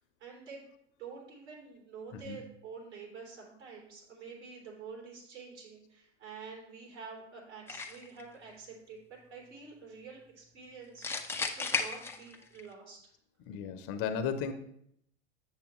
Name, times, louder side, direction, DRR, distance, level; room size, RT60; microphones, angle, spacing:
voice 1, 0.2-0.7 1.0-13.1, right 5 dB, 70° right, -2 dB, 3.2 m, -48 dB
sound 1, 7.7-8.2 11.0-12.6, left 4 dB, 5° left, 0.4 m, -34 dB
voice 2, 13.5-14.5, left 7 dB, 40° left, 8 dB, 0.8 m, -34 dB
7.4 x 6.8 x 3.0 m, 0.71 s
hypercardioid pair, 100°, 35 cm